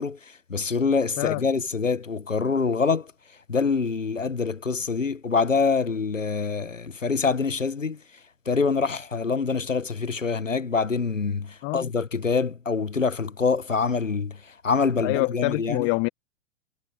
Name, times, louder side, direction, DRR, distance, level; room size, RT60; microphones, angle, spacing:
voice 1, 0.0-3.1 3.5-8.0 8.5-15.9, left 5 dB, 90° left, 1.1 m, -25 dB
voice 2, 15.0-16.1, left 32 dB, 30° left, 1.0 m, -26 dB
figure-of-eight pair, 105°, 37 cm